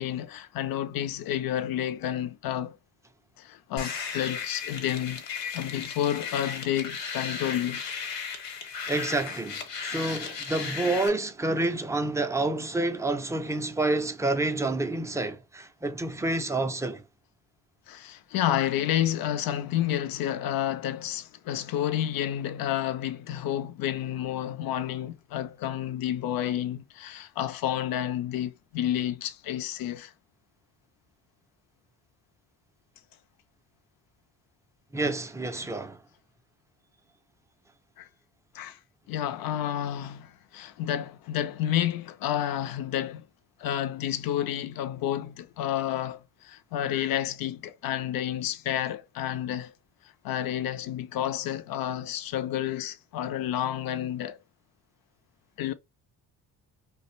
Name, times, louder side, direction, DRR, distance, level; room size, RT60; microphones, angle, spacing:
voice 1, 0.0-2.8 3.4-5.2 5.5-7.8 17.9-30.1 35.6-35.7 38.0-38.1 38.5-38.8 39.1-43.3 43.6-49.7 50.2-54.4 55.6-55.7, left 11 dB, 55° left, 0.5 m, -30 dB
sound 1, 3.8-11.1, left 6 dB, 75° left, 1.0 m, -35 dB
voice 2, 8.9-17.0 34.9-36.0, right 2 dB, 10° right, 0.4 m, -28 dB
2.3 x 2.1 x 3.0 m
supercardioid pair, 75°, 42 cm